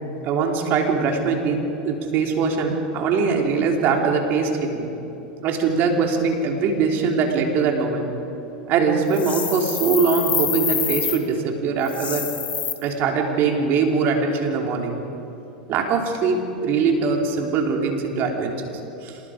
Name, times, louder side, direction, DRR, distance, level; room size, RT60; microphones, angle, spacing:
voice 1, 0.2-4.9 5.4-8.1 8.7-12.2 12.8-15.0 15.7-18.7 19.0-19.2, right 5 dB, 45° right, 2 dB, 3.4 m, -22 dB
sound 1, 9.1-11.2 11.8-12.7, left 7 dB, 30° left, 2.0 m, -26 dB
26.5 x 20.0 x 5.0 m, 3.0 s
hypercardioid pair, 110°, 5 cm